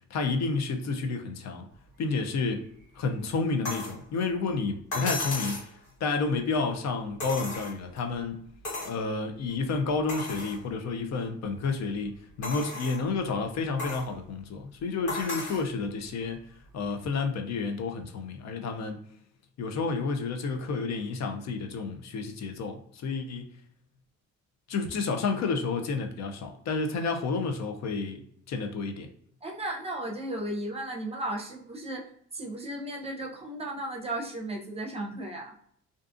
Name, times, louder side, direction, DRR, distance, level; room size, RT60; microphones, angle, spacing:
voice 1, 0.1-1.7 2.0-2.7 3.0-5.6 6.0-8.5 8.8-16.4 16.7-19.0 19.6-23.5 24.7-28.2 28.5-29.1, left 4 dB, 60° left, 5 dB, 0.6 m, -30 dB
sound 1, 3.6-4.0 4.9-5.7 7.2-8.0 8.6-9.0 9.5-9.6 10.1-10.6 11.2-11.3 12.4-13.0 13.8-14.1 15.1-15.7 16.9-17.0, left 2 dB, 80° left, 1.4 m, -35 dB
voice 2, 29.4-35.6, right 1 dB, 20° right, 0 dB, 0.6 m, -35 dB
2.5 x 2.3 x 2.5 m, 0.65 s
cardioid pair, 90°, 30 cm